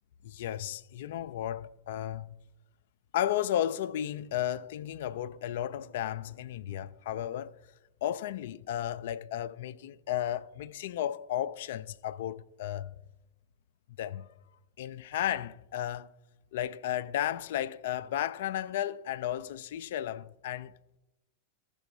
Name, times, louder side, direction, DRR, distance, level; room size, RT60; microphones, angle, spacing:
voice 1, 0.2-2.4 3.1-7.5 8.0-13.0 14.0-14.3 14.8-16.1 16.5-20.7, left 11 dB, 55° left, 0.3 m, -34 dB
15.5 x 6.8 x 2.5 m
figure-of-eight pair, 90°, 0 cm